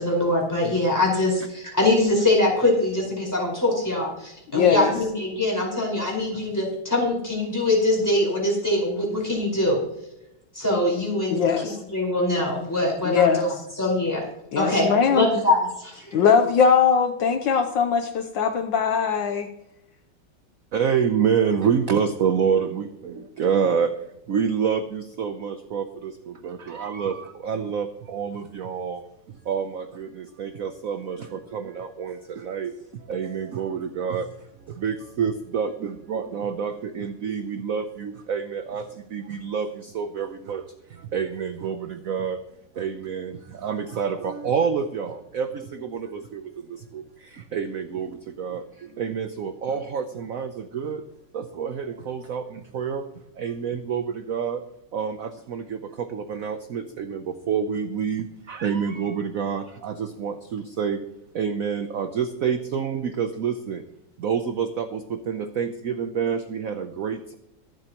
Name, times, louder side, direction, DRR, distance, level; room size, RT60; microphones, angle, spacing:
voice 1, 0.0-9.8 10.5-14.2 14.5-16.3, left 1 dB, 10° left, -3 dB, 4.9 m, -23 dB
voice 2, 4.5-4.9 11.3-11.8 13.1-13.4 14.5-15.3 16.1-19.5, left 6 dB, 70° left, 7 dB, 1.4 m, -20 dB
voice 3, 20.7-23.9 24.3-29.0 29.5-34.3 34.8-40.6 40.9-42.4 42.8-51.0 51.3-53.1 53.4-54.6 54.9-61.0 61.3-63.8 64.2-67.3, right 7 dB, 60° right, 8 dB, 0.9 m, -28 dB
23.5 x 7.9 x 3.0 m, 0.85 s
omnidirectional pair, 2.3 m